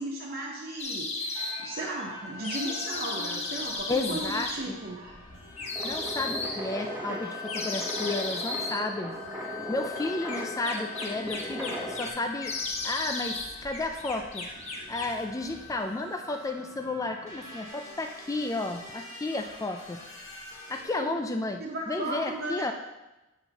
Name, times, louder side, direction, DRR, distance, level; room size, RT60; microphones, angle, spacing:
voice 1, 0.0-5.1 21.0-21.2 21.6-22.7, right 2 dB, 50° right, -2 dB, 0.8 m, -36 dB
sound 1, 0.8-1.6 2.4-4.6 5.6-6.6 7.5-8.8 10.3-12.1 12.4-13.5 13.7-15.2, left 3 dB, 30° left, 0.9 m, -34 dB
sound 2, 1.3-20.8, left 4 dB, 85° left, 1.7 m, -44 dB
voice 2, 3.9-4.8 5.8-9.2 9.7-12.6 12.8-14.5 14.9-20.0 20.7-22.7, left 2 dB, 15° left, 4 dB, 0.3 m, -32 dB
sound 3, 5.7-12.1, equal, 10° right, 1.1 m, -38 dB
9.0 x 5.5 x 2.9 m, 1.0 s
head